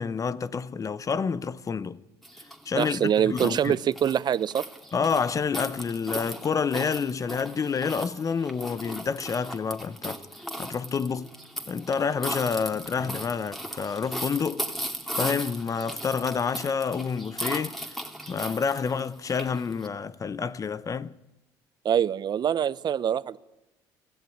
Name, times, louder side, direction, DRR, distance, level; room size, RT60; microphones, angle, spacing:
voice 1, 0.0-2.0 2.7-3.8 4.9-10.2 10.6-11.3 11.7-14.7 15.2-17.8 18.3-21.1, left 6 dB, 35° left, 0.9 m, -28 dB
sound 1, 2.2-19.9, equal, ahead, 2.8 m, -37 dB
voice 2, 2.8-4.6 21.8-23.4, right 9 dB, 45° right, 0.8 m, -24 dB
26.0 x 14.5 x 9.4 m
supercardioid pair, 75°, 10 cm